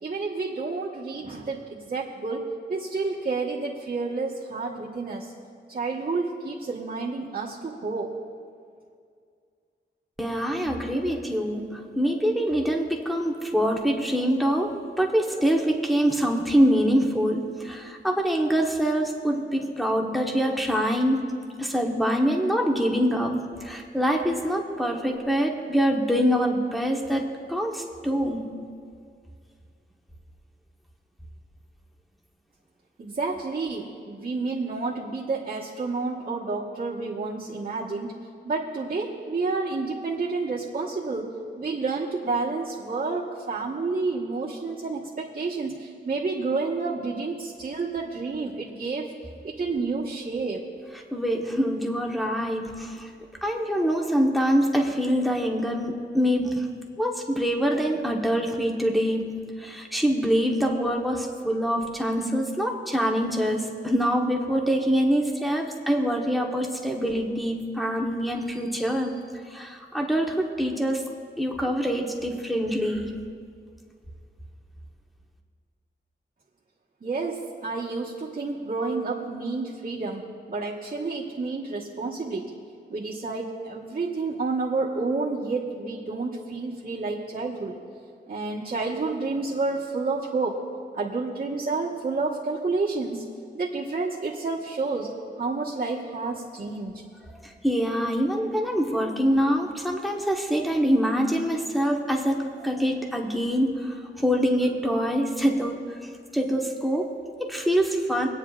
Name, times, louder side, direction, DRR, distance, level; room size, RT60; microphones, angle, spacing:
voice 1, 0.0-2.4 2.7-5.3 5.7-8.1 33.0-38.2 38.4-49.1 49.4-50.6 77.0-82.5 82.9-87.7 88.3-90.6 90.9-93.2 93.5-97.0, right 3 dB, 50° right, -8 dB, 1.3 m, -30 dB
voice 2, 10.2-21.3 21.6-28.6 51.1-53.1 53.4-56.7 57.0-69.1 69.5-71.0 71.4-73.1 97.4-106.0 106.3-108.3, equal, ahead, 0 dB, 1.1 m, -25 dB
27.5 x 9.3 x 2.5 m, 2.2 s
wide cardioid pair, 155°, 20 cm